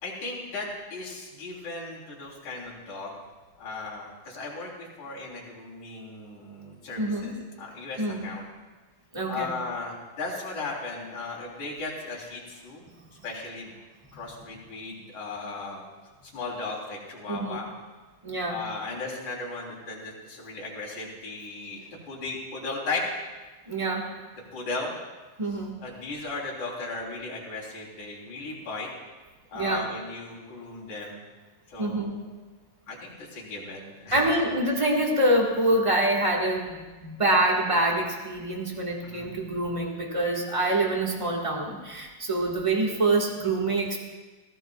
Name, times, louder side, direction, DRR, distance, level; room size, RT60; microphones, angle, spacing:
voice 1, 0.0-3.1 3.6-8.5 9.3-12.8 13.2-13.7 14.1-15.8 16.2-17.7 18.5-23.0 24.5-24.9 25.8-28.9 29.5-31.2 31.7-32.3 32.9-34.2 39.0-39.3, left 3 dB, 65° left, -4 dB, 4.7 m, -36 dB
voice 2, 7.0-7.3 8.0-8.3 9.1-9.5 17.3-17.6 18.2-18.6 23.7-24.1 25.4-25.8 29.5-29.8 31.8-32.1 34.1-44.0, right 1 dB, 30° right, -1 dB, 0.6 m, -26 dB
21.0 x 16.5 x 2.4 m, 1.2 s
omnidirectional pair, 3.6 m